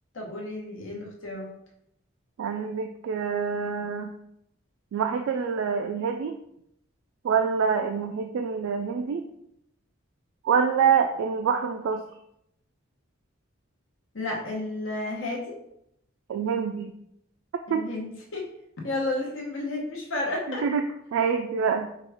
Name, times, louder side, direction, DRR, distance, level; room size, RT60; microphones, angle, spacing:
voice 1, 0.1-1.5 14.1-15.6 17.7-18.5 18.8-20.7, left 2 dB, 80° left, 0 dB, 0.9 m, -32 dB
voice 2, 2.4-4.1 4.9-6.4 7.2-9.2 10.4-12.0 16.3-16.9 17.7-17.9 20.6-20.8 21.1-21.9, right 6 dB, 90° right, 5 dB, 0.3 m, -26 dB
4.5 x 2.3 x 3.4 m, 0.75 s
head